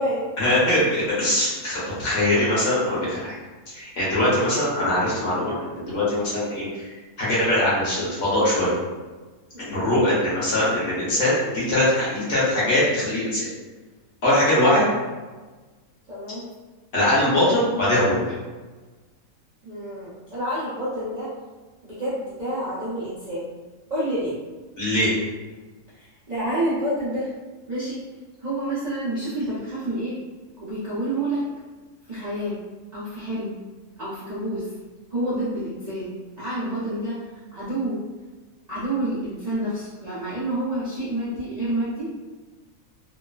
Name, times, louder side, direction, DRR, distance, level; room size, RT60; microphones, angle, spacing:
voice 1, 0.4-3.3 3.7-6.9 7.2-8.7 9.6-13.5 14.2-14.8 16.9-18.3 24.8-25.1, left 1 dB, 55° left, -9 dB, 1.3 m, -22 dB
voice 2, 16.1-16.5 19.6-21.3 21.8-23.5 23.9-24.4 25.9-27.3 27.7-28.0 28.4-30.2 30.6-31.4 32.1-32.6 32.9-33.5 34.0-34.7 35.1-36.1 36.4-37.2 37.5-38.0 38.7-42.1, right 1 dB, 45° right, -12 dB, 0.5 m, -28 dB
3.0 x 2.1 x 2.3 m, 1.3 s
omnidirectional pair, 1.6 m